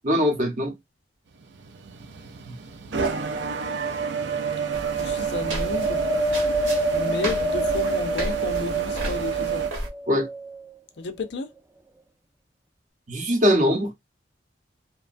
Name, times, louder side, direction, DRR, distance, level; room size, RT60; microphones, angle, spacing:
voice 1, 0.0-0.7 2.5-2.6 10.1-10.3 13.1-13.9, equal, 40° right, 0.8 m, -21 dB
sound 1, 1.4-9.7, right 7 dB, 65° right, 0.5 m, -28 dB
sound 2, 4.7-9.9, right 1 dB, 90° right, 1.2 m, -34 dB
voice 2, 5.0-6.0 6.9-9.7 11.0-11.5, left 3 dB, 60° left, 0.5 m, -32 dB
Wind, 5.7-9.2 9.8-10.8 11.6-11.7, left 2 dB, 10° right, 0.4 m, -28 dB
2.9 x 2.2 x 2.5 m
head